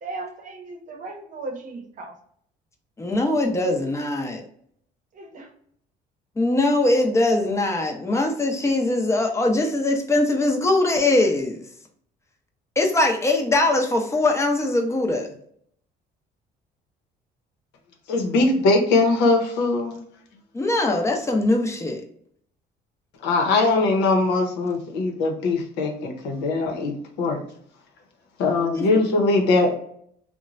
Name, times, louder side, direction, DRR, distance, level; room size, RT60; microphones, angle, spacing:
voice 1, 0.0-2.2 5.1-5.5, right 3 dB, 50° right, 3 dB, 0.8 m, -36 dB
voice 2, 3.0-4.4 6.4-11.6 12.8-15.3 20.5-22.0 28.7-28.9, left 2 dB, 15° left, 2 dB, 0.6 m, -21 dB
voice 3, 18.1-20.0 23.2-27.4 28.4-29.8, left 3 dB, 85° left, 2 dB, 0.8 m, -21 dB
3.0 x 2.1 x 2.4 m, 0.65 s
cardioid pair, 110°, 17 cm